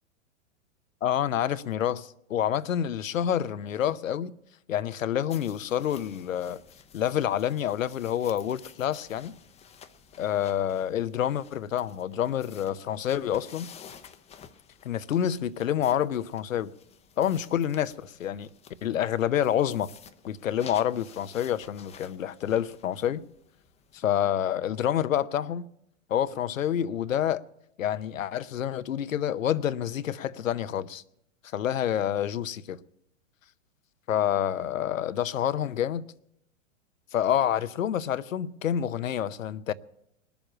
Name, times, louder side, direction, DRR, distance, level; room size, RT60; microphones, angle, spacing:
voice 1, 1.0-4.3 4.7-6.6 6.9-9.3 10.2-13.7 14.8-16.7 17.2-18.5 18.8-19.9 20.3-23.2 23.9-25.7 26.1-27.4 27.8-31.0 31.5-32.8 34.1-36.0 37.1-39.7, left 10 dB, 85° left, 0.7 m, -28 dB
sound 1, 5.3-24.2, left 7 dB, 15° left, 0.7 m, -52 dB
20.5 x 7.1 x 8.8 m
hypercardioid pair, 110°, 38 cm